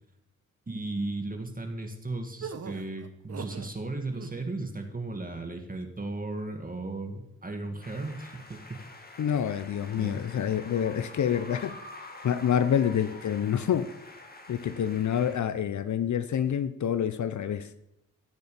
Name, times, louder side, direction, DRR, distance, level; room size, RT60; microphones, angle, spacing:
voice 1, 0.7-8.8 10.0-10.2, right 2 dB, 25° right, 4 dB, 1.9 m, -35 dB
sound 1, 2.4-3.7 4.1-4.6, right 6 dB, 50° right, 1.2 m, -40 dB
sound 2, 7.8-15.4, left 2 dB, 30° left, 2.3 m, -47 dB
voice 2, 9.2-11.7 12.2-13.9 14.5-17.7, left 9 dB, 65° left, 13 dB, 0.8 m, -27 dB
16.0 x 6.5 x 7.0 m, 0.85 s
cardioid pair, 55°, 31 cm